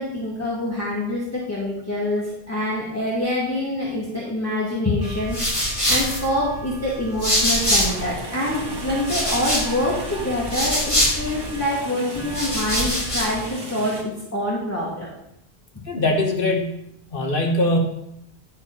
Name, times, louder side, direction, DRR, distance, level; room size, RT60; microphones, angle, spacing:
voice 1, 0.0-15.1, left 1 dB, 15° left, -8 dB, 1.8 m, -26 dB
sound 1, 5.0-8.1 8.5-11.6 12.1-13.4, equal, 30° left, 2.5 m, -25 dB
sound 2, 7.5-14.0, right 1 dB, 25° right, 1.2 m, -35 dB
voice 2, 15.9-16.8 17.1-17.8, left 1 dB, 55° left, 2 dB, 1.3 m, -21 dB
11.0 x 4.6 x 5.4 m, 0.80 s
omnidirectional pair, 1.1 m